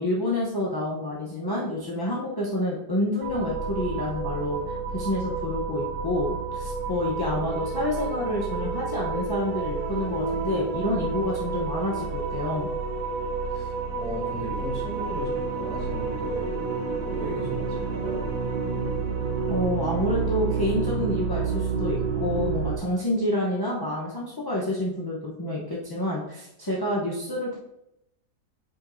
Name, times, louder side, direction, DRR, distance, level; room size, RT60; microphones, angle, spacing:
voice 1, 0.0-12.7 19.5-27.6, left 1 dB, 25° left, -6 dB, 0.5 m, -28 dB
sound 1, 3.2-22.8, right 5 dB, 85° right, 1.4 m, -29 dB
voice 2, 13.5-16.6 17.0-18.3, equal, 60° right, -7 dB, 3.0 m, -37 dB
7.6 x 5.1 x 2.6 m, 0.83 s
omnidirectional pair, 1.7 m